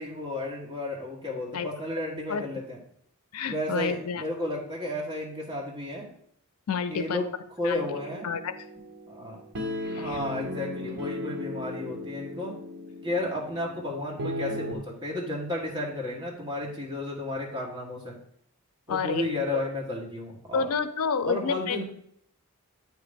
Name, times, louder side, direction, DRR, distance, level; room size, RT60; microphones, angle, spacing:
voice 1, 0.0-2.8 3.5-6.1 6.9-7.3 7.6-8.3 9.1-9.4 10.0-12.6 13.0-18.2 18.9-20.7 21.2-21.8, left 1 dB, 20° right, -3 dB, 1.6 m, -33 dB
voice 2, 3.3-4.2 6.7-7.2 7.6-7.9 8.2-8.5 9.8-10.2 18.9-19.6 20.5-21.8, left 5 dB, 75° left, 11 dB, 0.5 m, -29 dB
sound 1, 7.7-14.7, left 1 dB, 55° right, 0.9 m, -36 dB
8.3 x 3.0 x 5.1 m, 0.67 s
head